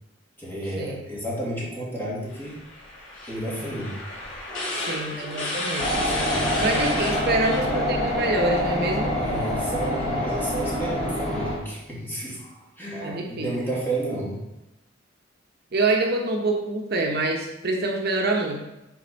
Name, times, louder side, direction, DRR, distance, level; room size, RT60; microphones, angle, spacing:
voice 1, 0.4-2.6 3.3-4.0 4.4-5.6 6.1-6.7 7.4-7.5 7.8-8.0 9.1-14.4, right 1 dB, 10° left, -6 dB, 2.4 m, -32 dB
sound 1, 2.3-8.8, left 2 dB, 80° left, 2.9 m, -33 dB
voice 2, 4.9-9.2 13.0-13.5 15.7-18.6, right 2 dB, 55° right, 1 dB, 0.9 m, -26 dB
sound 2, 5.8-11.6, left 1 dB, 35° left, 1.8 m, -26 dB
7.0 x 4.4 x 5.3 m, 0.93 s
head